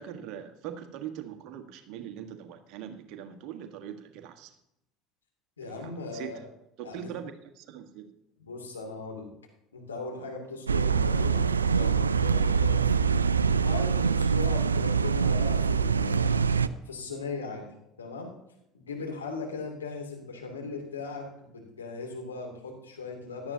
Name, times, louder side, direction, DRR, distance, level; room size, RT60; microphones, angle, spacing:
voice 1, 0.0-4.5 5.6-6.4 6.8-8.1, right 9 dB, 55° right, 7 dB, 1.4 m, -41 dB
voice 2, 5.6-6.4 6.8-7.1 8.4-9.3 9.7-12.8 13.5-16.4 16.8-17.6 18.0-18.3 18.7-23.5, left 3 dB, 85° left, 0 dB, 2.6 m, -38 dB
sound 1, 10.7-16.7, right 6 dB, 90° right, 0.4 m, -24 dB
16.5 x 12.0 x 2.8 m, 0.83 s
figure-of-eight pair, 70°, 0 cm